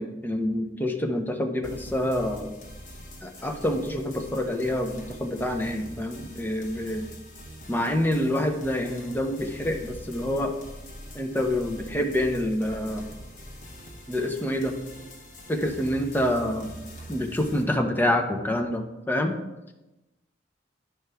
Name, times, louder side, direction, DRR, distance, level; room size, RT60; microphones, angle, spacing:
voice 1, 0.0-2.5 3.2-7.0 7.7-10.5 11.1-13.0 14.1-14.8 15.5-16.7 17.1-19.4, left 1 dB, 10° left, 4 dB, 0.6 m, -27 dB
sound 1, 1.6-17.6, equal, 40° left, 1.1 m, -44 dB
10.5 x 4.6 x 3.4 m, 1.0 s
head